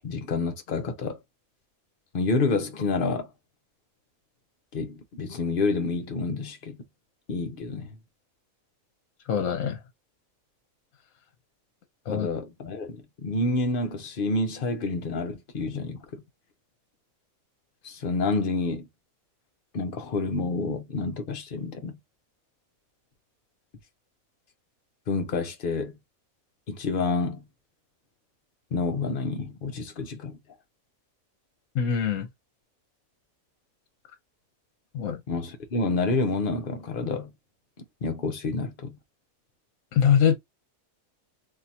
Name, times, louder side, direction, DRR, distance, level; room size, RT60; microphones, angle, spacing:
voice 1, 0.0-1.2 2.1-3.3 4.7-6.8 7.3-8.0 12.1-16.2 17.8-18.9 19.7-22.0 25.1-26.0 26.7-27.4 28.7-30.4 35.3-37.3 38.0-39.0, left 3 dB, 45° left, 0.9 m, -28 dB
voice 2, 9.3-9.8 12.1-12.3 31.7-32.3 34.9-35.2 39.9-40.4, left 8 dB, 70° left, 1.2 m, -23 dB
3.7 x 2.8 x 2.8 m
omnidirectional pair, 1.5 m